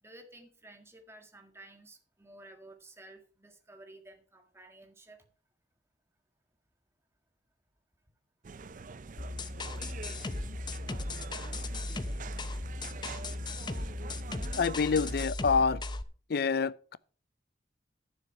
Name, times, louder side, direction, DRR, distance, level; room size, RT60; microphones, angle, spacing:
voice 1, 0.0-5.3, right 2 dB, 15° right, 1.8 m, -53 dB
sound 1, 8.4-15.3, right 4 dB, 45° right, 0.5 m, -45 dB
sound 2, 9.2-16.0, left 2 dB, 25° left, 0.7 m, -37 dB
voice 2, 14.6-15.8 16.3-17.0, left 5 dB, 60° left, 0.5 m, -27 dB
10.5 x 7.3 x 5.7 m
head